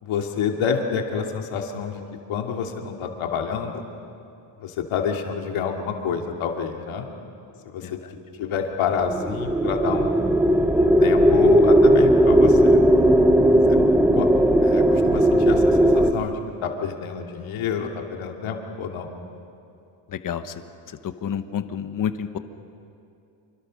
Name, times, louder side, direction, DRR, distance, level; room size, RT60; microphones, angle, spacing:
voice 1, 0.0-2.0 2.3-3.8 4.6-7.1 7.6-8.0 8.4-10.2 10.8-12.8 13.7-13.8 14.1-14.3 14.6-19.1, left 6 dB, 70° left, 2 dB, 2.7 m, -28 dB
sound 1, 9.0-16.1, right 1 dB, 5° right, 0.7 m, -17 dB
voice 2, 20.2-20.5 21.2-22.4, left 8 dB, 40° left, 10 dB, 1.1 m, -28 dB
27.0 x 25.0 x 6.5 m, 2.6 s
cardioid pair, 170°, 49 cm